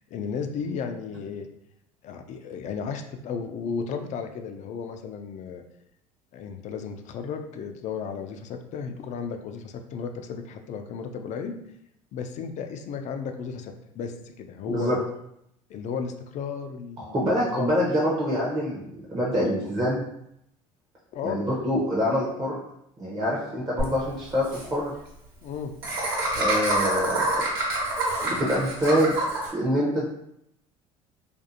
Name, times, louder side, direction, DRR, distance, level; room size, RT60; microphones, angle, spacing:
voice 1, 0.1-1.5 2.0-5.6 6.3-11.6 12.1-15.0 15.7-17.2 17.5-17.7 21.1-21.4 25.4-25.7, left 6 dB, 45° left, 6 dB, 0.4 m, -34 dB
voice 2, 17.0-20.0 21.2-22.6 23.0-24.9 26.3-27.2 28.2-29.1 29.5-30.1, equal, 20° right, -6 dB, 0.7 m, -25 dB
Laughter, 23.8-23.9 24.1-24.2 24.4-24.6 25.8-29.5, right 2 dB, 65° right, 1.2 m, -26 dB
2.5 x 2.3 x 2.6 m, 0.76 s
hypercardioid pair, 80°, 17 cm